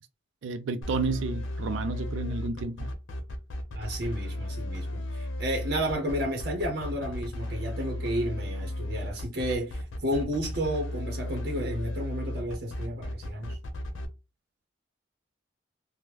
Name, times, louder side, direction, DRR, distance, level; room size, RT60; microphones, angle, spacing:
voice 1, 0.4-2.9, right 4 dB, 80° right, 0.4 m, -31 dB
sound 1, 0.8-14.1, left 1 dB, 90° left, 0.7 m, -34 dB
voice 2, 3.8-13.6, equal, 55° right, 0.7 m, -32 dB
3.4 x 2.1 x 2.9 m
head